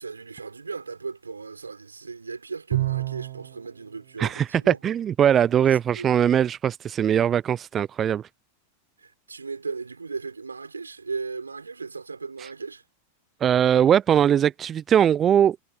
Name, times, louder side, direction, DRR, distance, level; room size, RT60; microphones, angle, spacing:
voice 1, 0.0-4.8 5.5-6.1 9.0-12.8, right 4 dB, 85° right, 5.8 m, -36 dB
Bowed string instrument, 2.7-3.6, right 16 dB, 60° right, 1.0 m, -27 dB
voice 2, 4.2-8.3 13.4-15.6, right 9 dB, 30° right, 0.3 m, -21 dB
figure-of-eight pair, 90°, 0 cm